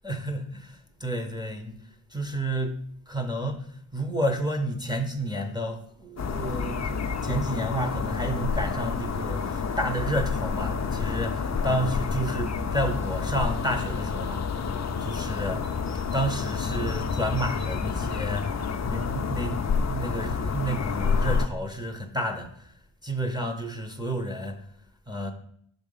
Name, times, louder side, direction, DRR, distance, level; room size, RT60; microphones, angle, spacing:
voice 1, 0.0-2.8 3.1-15.8 16.1-22.7 23.0-24.7 25.1-25.3, right 1 dB, 10° right, 3 dB, 0.8 m, -31 dB
sound 1, 6.2-21.5, left 5 dB, 35° left, 0.5 m, -29 dB
5.7 x 4.0 x 5.4 m, 0.66 s
wide cardioid pair, 85°, 48 cm